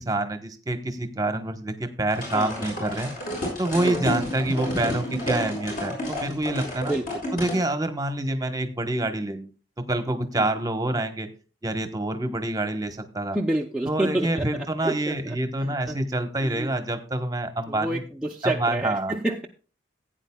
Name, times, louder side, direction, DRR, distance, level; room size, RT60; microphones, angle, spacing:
voice 1, 0.0-3.1 3.6-7.0 7.3-9.5 9.8-11.3 11.6-13.4 13.9-18.0 18.4-19.1, right 1 dB, 20° right, 7 dB, 1.1 m, -27 dB
sound 1, 2.1-7.6, left 1 dB, 45° left, 6.1 m, -31 dB
voice 2, 2.3-2.7 3.7-4.0 6.8-7.2 10.4-10.5 13.3-16.0 16.4-16.7 17.7-19.5, right 1 dB, 5° right, -2 dB, 0.6 m, -29 dB
16.0 x 9.1 x 2.3 m, 0.35 s
head